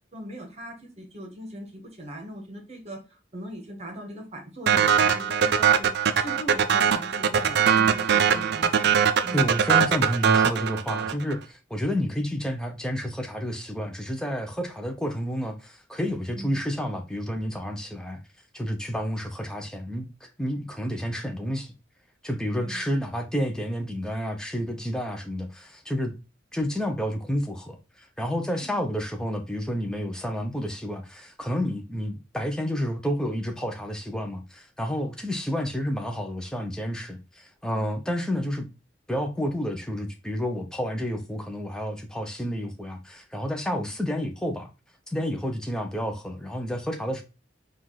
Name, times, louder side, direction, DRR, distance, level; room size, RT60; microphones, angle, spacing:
voice 1, 0.1-9.0 9.2-9.5 16.3-16.6 22.6-22.8 28.6-28.8 37.7-37.8 43.6-43.9, equal, 35° right, 1.3 m, -40 dB
sound 1, 4.7-11.3, right 7 dB, 60° right, 0.4 m, -21 dB
voice 2, 9.3-18.2 18.5-21.7 22.2-26.1 26.5-38.7 39.1-44.7 45.1-47.2, equal, 5° left, 0.7 m, -30 dB
4.6 x 2.5 x 3.8 m
head